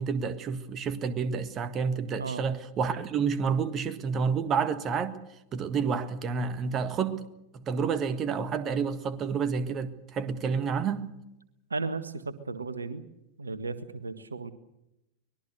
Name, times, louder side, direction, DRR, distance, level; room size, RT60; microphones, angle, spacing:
voice 1, 0.0-5.2 5.5-7.2 7.5-11.1, right 6 dB, 30° right, 1.7 m, -29 dB
voice 2, 2.2-2.5 11.7-13.0 13.4-14.5, right 3 dB, 75° right, 1.6 m, -35 dB
24.0 x 21.0 x 6.7 m
figure-of-eight pair, 90°, 0 cm